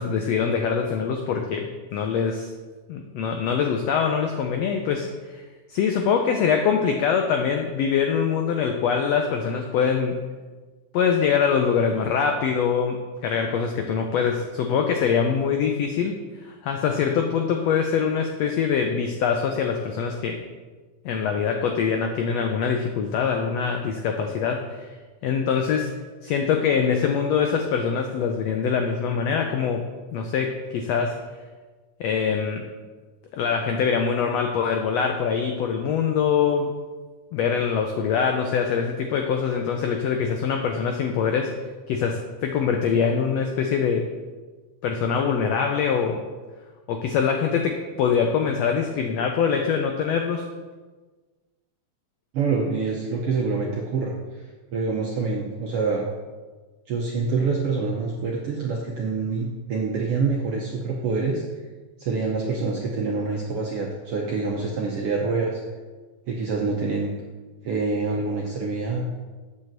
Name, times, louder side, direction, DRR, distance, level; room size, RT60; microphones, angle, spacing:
voice 1, 0.0-2.5 2.9-5.4 5.7-10.2 10.9-20.4 21.0-24.9 25.2-25.9 26.2-31.2 32.0-32.6 33.3-36.8 37.3-41.6 41.9-44.1 44.8-46.2 46.9-50.5, left 6 dB, 90° left, 4 dB, 1.4 m, -24 dB
voice 2, 52.3-54.1 54.7-56.1 56.9-61.4 62.0-65.6 66.3-67.1 67.6-69.0, right 4 dB, 75° right, -1 dB, 1.3 m, -26 dB
7.7 x 5.4 x 7.3 m, 1.3 s
omnidirectional pair, 3.8 m